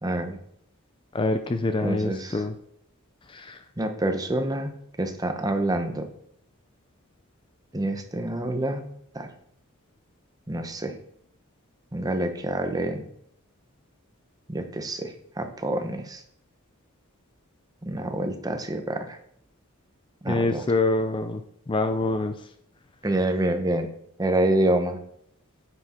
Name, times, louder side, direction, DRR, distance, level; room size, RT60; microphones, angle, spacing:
voice 1, 0.0-0.4 1.8-2.4 3.8-4.7 5.0-6.1 7.7-8.8 9.1-9.3 10.5-10.9 11.9-13.0 14.5-16.2 17.8-19.2 20.2-20.6 23.0-23.9 24.2-25.0, right 1 dB, 15° right, 6 dB, 0.9 m, -27 dB
voice 2, 1.1-2.5 3.3-3.6 20.3-21.4 21.7-22.3, left 2 dB, 20° left, 8 dB, 0.4 m, -25 dB
9.5 x 6.0 x 4.3 m, 0.71 s
head